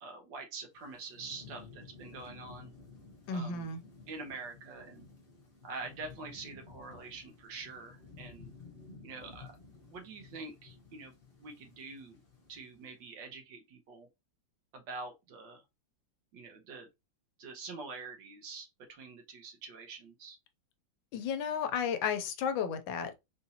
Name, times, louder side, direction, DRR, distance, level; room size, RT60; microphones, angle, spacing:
voice 1, 0.0-2.7 3.3-3.7 4.1-5.1 5.6-8.5 9.0-9.5 9.9-11.1 11.4-12.2 12.5-14.1 14.7-15.6 16.3-16.9 17.4-20.4, right 4 dB, 75° right, 1.6 m, -45 dB
Thunderstorm / Rain, 0.7-13.0, left 4 dB, 35° left, 1.2 m, -54 dB
voice 2, 3.3-3.8 21.1-23.2, left 6 dB, 85° left, 1.4 m, -33 dB
4.3 x 2.6 x 2.8 m
omnidirectional pair, 2.0 m